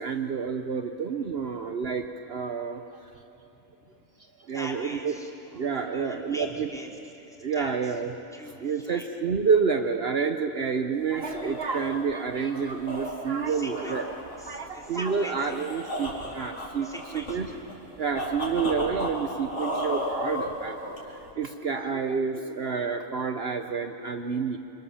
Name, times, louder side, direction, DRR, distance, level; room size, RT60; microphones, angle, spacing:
voice 1, 0.0-2.8 4.5-5.1 5.5-6.7 7.4-8.1 8.6-14.1 14.5-16.9 17.1-17.5 18.0-24.6, right 5 dB, 55° right, 6 dB, 1.1 m, -29 dB
voice 2, 4.5-8.0 8.3-9.1 13.5-14.0 14.4-15.7 16.8-17.6 20.6-20.7, equal, 5° left, -1 dB, 3.3 m, -43 dB
scary breath, 11.0-21.3, equal, 70° left, 4.7 m, -35 dB
28.0 x 26.5 x 7.2 m, 2.9 s
omnidirectional pair, 1.2 m